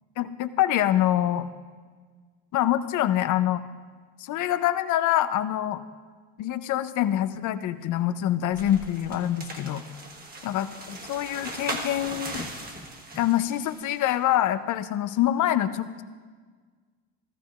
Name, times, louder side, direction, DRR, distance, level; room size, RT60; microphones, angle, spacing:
voice 1, 0.2-1.5 2.5-3.6 4.2-5.8 6.4-9.8 10.4-12.5 13.2-15.9, left 12 dB, 50° left, 11 dB, 0.7 m, -25 dB
sound 1, 8.5-14.1, right 1 dB, 25° right, 1.3 m, -38 dB
15.0 x 14.0 x 2.5 m, 1.5 s
supercardioid pair, 100°, 38 cm